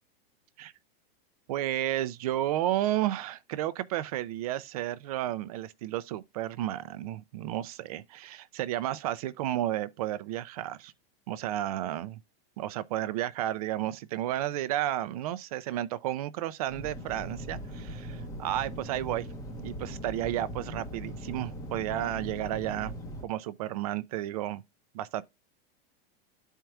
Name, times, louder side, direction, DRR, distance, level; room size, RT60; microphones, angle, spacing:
voice 1, 1.5-10.9 11.3-12.2 12.6-19.3 19.6-23.0 23.2-24.6 24.9-25.2, right 13 dB, 40° right, 0.4 m, -32 dB
sound 1, 16.7-23.2, equal, 10° left, 0.8 m, -40 dB
12.5 x 4.5 x 2.3 m
supercardioid pair, 170°, 31 cm